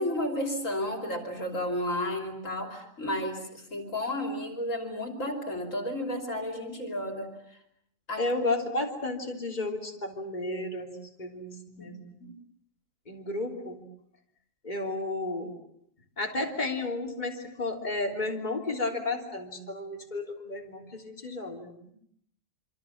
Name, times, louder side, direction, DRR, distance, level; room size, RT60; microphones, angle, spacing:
voice 1, 0.0-7.3 8.1-8.3 11.8-11.9 12.2-12.4, left 1 dB, 70° left, 4 dB, 3.5 m, -32 dB
voice 2, 8.2-12.2 13.1-13.8 14.6-15.5 16.2-21.7, left 2 dB, 35° left, 1 dB, 3.5 m, -32 dB
27.0 x 25.5 x 7.3 m, 0.71 s
omnidirectional pair, 1.4 m